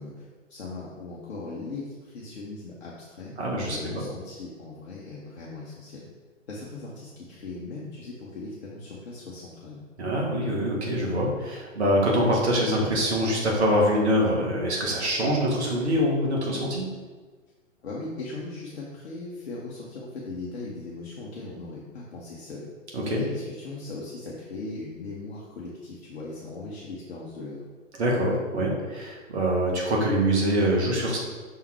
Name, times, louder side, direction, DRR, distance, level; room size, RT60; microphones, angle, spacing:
voice 1, 0.0-3.3 3.6-6.0 6.5-9.8 17.8-22.7 23.1-27.6, left 3 dB, 50° left, -5 dB, 1.1 m, -39 dB
voice 2, 3.4-4.0 10.0-16.9 22.9-23.2 28.0-31.2, equal, 55° right, -2 dB, 1.8 m, -24 dB
5.7 x 3.7 x 4.5 m, 1.4 s
figure-of-eight pair, 120°, 40 cm